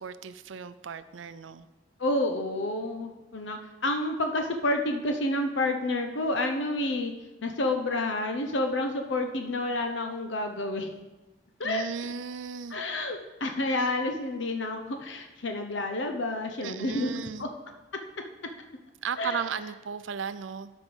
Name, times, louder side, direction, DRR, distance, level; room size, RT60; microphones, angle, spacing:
voice 1, 0.0-1.7 11.6-12.8 16.6-17.5 19.0-20.7, right 6 dB, 85° right, 13 dB, 0.5 m, -35 dB
voice 2, 2.0-7.1 7.4-10.9 11.6-11.8 12.7-17.5 19.2-19.4, left 2 dB, 75° left, 5 dB, 0.9 m, -29 dB
13.0 x 5.3 x 5.4 m, 1.1 s
head